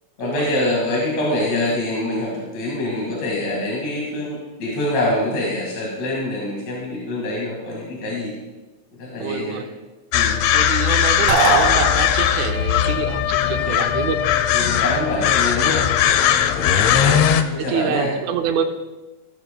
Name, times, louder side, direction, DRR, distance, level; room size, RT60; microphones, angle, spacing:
voice 1, 0.2-8.3 9.0-9.6 10.1-10.4 13.4-13.9 14.5-15.9 16.9-18.1, left 1 dB, 60° left, -4 dB, 3.1 m, -25 dB
voice 2, 9.2-9.6 10.5-14.2 16.7-17.2 17.6-18.6, right 8 dB, 75° right, 5 dB, 1.9 m, -26 dB
sound 1, 10.1-17.4, left 10 dB, 85° left, 1.5 m, -19 dB
sound 2, 11.3-12.6, right 4 dB, 55° right, 2.2 m, -20 dB
15.0 x 12.5 x 2.2 m, 1.1 s
omnidirectional pair, 3.7 m